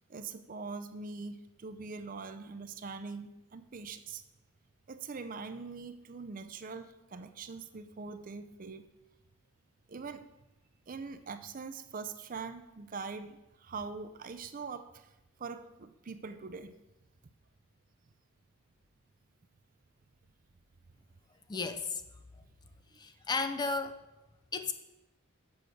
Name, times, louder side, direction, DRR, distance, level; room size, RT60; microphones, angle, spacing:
voice 1, 0.1-4.2 4.9-8.8 9.9-10.2 10.9-15.1 15.4-16.7, right 4 dB, 40° right, 10 dB, 0.5 m, -43 dB
voice 2, 21.5-22.0 23.0-23.9 24.5-24.7, left 4 dB, 20° left, 8 dB, 0.4 m, -33 dB
7.0 x 6.0 x 6.3 m, 0.98 s
head